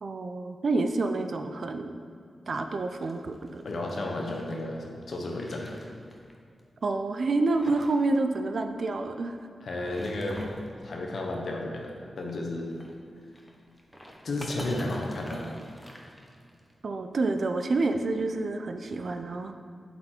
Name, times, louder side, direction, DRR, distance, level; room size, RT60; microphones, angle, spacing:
voice 1, 0.0-2.0 2.5-3.6 6.8-9.3 16.8-19.5, right 3 dB, 65° right, 7 dB, 0.4 m, -28 dB
sound 1, 2.8-4.6 5.1-6.3 6.6-6.7 7.2-8.0 8.3-8.4 9.6-10.7 12.6-16.7, equal, 5° left, 1.0 m, -46 dB
voice 2, 3.6-5.7 9.6-12.7 14.2-15.5, left 2 dB, 70° left, 0 dB, 1.0 m, -33 dB
7.5 x 4.3 x 4.4 m, 2.3 s
cardioid pair, 60°, 0 cm